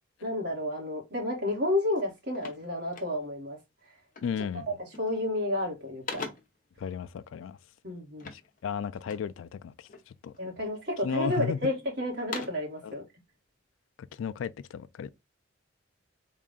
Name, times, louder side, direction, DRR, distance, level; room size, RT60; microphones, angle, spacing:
voice 1, 0.2-3.6 5.0-6.2 7.8-8.3 10.4-13.0, left 1 dB, 60° right, 1.8 m, -31 dB
sound 1, 1.5-1.7 1.9-3.5 4.1-4.5 4.8-5.3 5.6-6.7 8.2-9.4 9.9-10.5 11.0-11.7 12.1-12.8, left 4 dB, 45° left, 0.8 m, -43 dB
voice 2, 4.2-4.7 6.8-7.6 8.2-10.4 11.0-11.6 12.8-12.9 14.1-15.1, left 7 dB, 85° left, 0.3 m, -34 dB
3.7 x 2.4 x 3.6 m
head